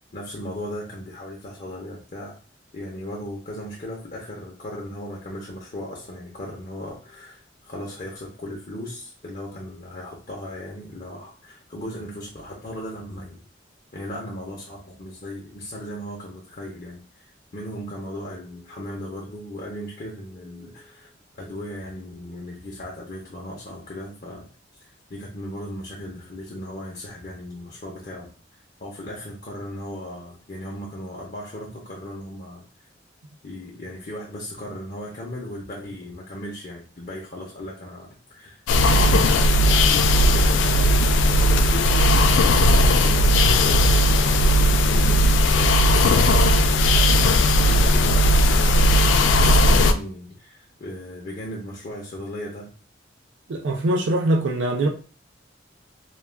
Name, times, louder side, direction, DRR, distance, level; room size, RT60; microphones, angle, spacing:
voice 1, 0.1-2.4 2.7-13.4 13.9-17.3 17.5-21.1 21.3-24.5 24.8-32.6 33.4-39.2 39.6-40.9 41.3-45.3 45.5-46.8 47.1-52.7, left 1 dB, 45° left, 0.6 m, -37 dB
sound 1, 38.7-49.9, left 1 dB, 80° left, 0.3 m, -17 dB
voice 2, 53.5-54.9, right 1 dB, 85° right, 0.4 m, -22 dB
2.3 x 2.2 x 3.3 m
head